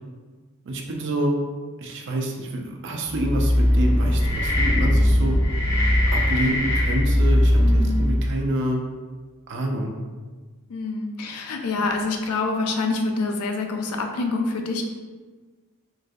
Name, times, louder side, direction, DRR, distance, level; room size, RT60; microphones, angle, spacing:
voice 1, 0.6-1.4 1.8-5.4 6.1-8.8 9.5-10.0, right 1 dB, 55° right, 1 dB, 0.5 m, -27 dB
sound 1, 3.0-8.4, left 1 dB, 15° left, 0.8 m, -20 dB
voice 2, 7.6-8.0 10.7-14.8, left 3 dB, 70° left, 4 dB, 0.4 m, -26 dB
3.9 x 2.6 x 2.3 m, 1.4 s
head